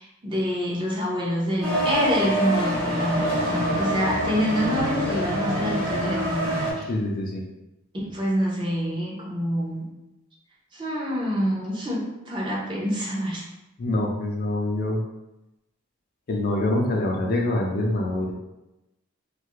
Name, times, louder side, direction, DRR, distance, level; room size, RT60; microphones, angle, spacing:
voice 1, 0.0-6.9 7.9-9.8 10.7-13.4, equal, 20° right, -5 dB, 0.6 m, -27 dB
sound 1, 1.6-6.7, equal, 70° right, 0.8 m, -25 dB
voice 2, 6.9-7.4 13.8-15.0 16.3-18.3, left 1 dB, 45° left, -1 dB, 0.4 m, -25 dB
2.5 x 2.4 x 3.0 m, 0.96 s
head